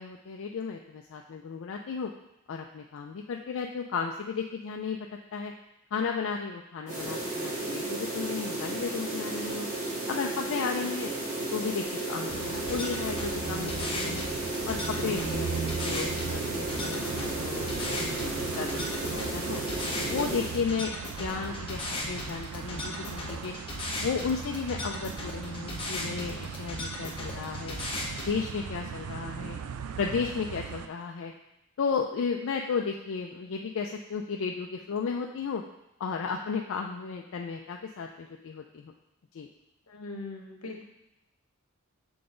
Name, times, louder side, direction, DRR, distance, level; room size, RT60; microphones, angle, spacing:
voice 1, 0.0-2.1 2.5-5.5 5.9-9.7 10.1-11.1 11.5-14.3 14.7-19.6 20.1-23.5 24.0-27.8 28.3-29.6 30.0-31.3 31.8-35.6 36.0-38.9 39.3-39.5, left 5 dB, 60° left, 2 dB, 0.4 m, -34 dB
sound 1, 6.9-20.6, right 2 dB, 35° right, 2.2 m, -34 dB
sound 2, 12.3-28.3, left 2 dB, 25° left, 0.9 m, -38 dB
sound 3, 12.3-30.9, right 6 dB, 80° right, 0.4 m, -39 dB
voice 2, 39.9-40.8, left 2 dB, 80° left, 2 dB, 1.0 m, -40 dB
6.8 x 3.9 x 3.8 m, 0.87 s
head